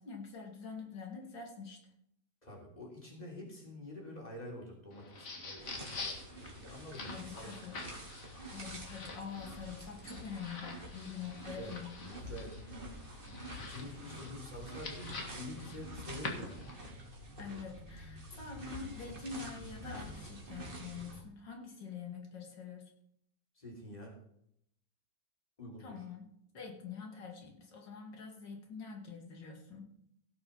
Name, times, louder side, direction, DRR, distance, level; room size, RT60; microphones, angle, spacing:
voice 1, 0.0-1.8 7.1-7.7 8.5-11.9 17.4-22.9 25.8-26.3 26.5-29.8, left 6 dB, 85° left, 1 dB, 2.9 m, -45 dB
voice 2, 2.4-6.2 6.6-7.7 11.6-16.7 23.6-24.2 25.6-26.1, left 1 dB, 20° left, -1 dB, 3.5 m, -48 dB
sound 1, 4.9-16.9, left 3 dB, 50° left, 2.1 m, -47 dB
sound 2, 5.6-21.2, equal, 30° right, 2.6 m, -48 dB
sound 3, 13.2-21.2, right 1 dB, 45° right, 2.5 m, -57 dB
16.5 x 6.2 x 5.4 m, 0.72 s
omnidirectional pair, 1.9 m